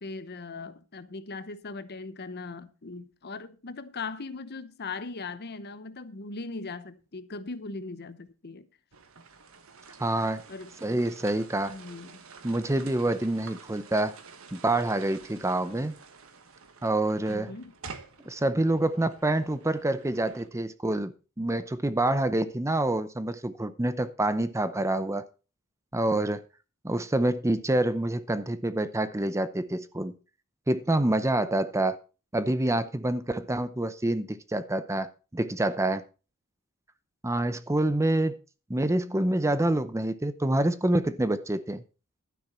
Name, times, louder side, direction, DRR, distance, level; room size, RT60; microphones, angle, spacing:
voice 1, 0.0-8.7 10.5-10.8 11.7-12.2 17.3-17.7, left 3 dB, 50° left, 0.9 m, -39 dB
sound 1, 8.9-20.5, right 4 dB, 65° right, 1.4 m, -49 dB
voice 2, 10.0-10.4 10.8-11.8 12.4-14.1 14.5-15.9 16.8-17.5 18.3-25.2 25.9-26.4 26.8-30.1 30.7-32.0 32.3-36.0 37.2-38.4 38.7-41.8, right 1 dB, 15° right, 0.6 m, -27 dB
12.0 x 9.8 x 4.3 m
head